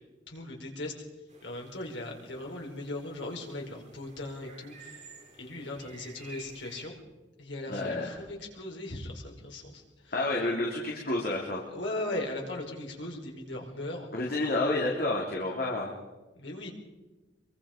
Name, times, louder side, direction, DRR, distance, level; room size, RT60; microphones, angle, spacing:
voice 1, 0.3-0.9 1.4-5.0 5.4-6.9 7.4-10.1 11.7-14.1 16.3-16.7, left 2 dB, 70° left, 0 dB, 4.9 m, -38 dB
sound 1, 1.3-6.9, right 3 dB, 40° right, 5.5 m, -52 dB
voice 2, 7.7-8.1 10.1-11.7 14.1-15.9, left 2 dB, 55° left, -2 dB, 3.2 m, -29 dB
25.5 x 23.5 x 5.2 m, 1.2 s
head